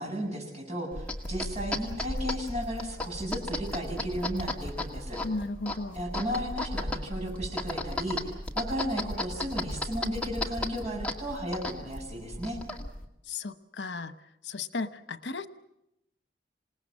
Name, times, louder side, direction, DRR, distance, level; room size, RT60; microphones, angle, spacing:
voice 1, 0.0-5.2 5.9-8.2 8.5-12.6, equal, 40° right, 0 dB, 7.7 m, -34 dB
sound 1, 0.9-13.1, left 1 dB, 5° left, 2.1 m, -35 dB
voice 2, 5.2-6.0 13.3-14.1 14.4-15.5, left 3 dB, 90° left, 11 dB, 1.0 m, -35 dB
27.0 x 19.0 x 7.5 m, 0.83 s
head